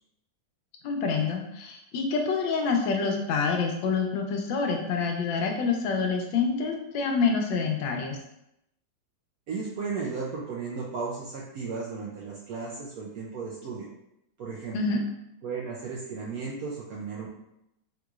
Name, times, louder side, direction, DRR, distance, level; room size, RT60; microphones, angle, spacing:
voice 1, 0.8-8.2 14.7-15.0, left 4 dB, 85° left, 3 dB, 1.3 m, -27 dB
voice 2, 9.5-13.9 14.4-14.8 15.4-17.3, right 4 dB, 75° right, -4 dB, 0.8 m, -35 dB
3.6 x 2.9 x 2.3 m, 0.84 s
omnidirectional pair, 2.0 m